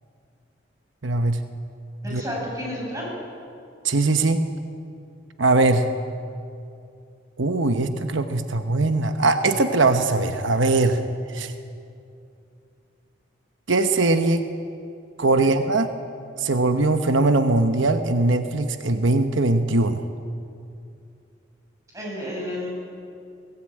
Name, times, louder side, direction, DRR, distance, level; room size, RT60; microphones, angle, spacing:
voice 1, 1.0-1.4 2.1-2.2 3.8-4.4 5.4-5.9 7.4-11.0 11.3-11.5 13.7-14.4 15.2-15.9 16.4-20.0, right 2 dB, 90° right, 8 dB, 1.0 m, -21 dB
voice 2, 2.0-3.1 15.4-15.5 21.9-22.7, equal, 15° right, -4 dB, 7.9 m, -31 dB
22.0 x 17.5 x 8.8 m, 2.5 s
head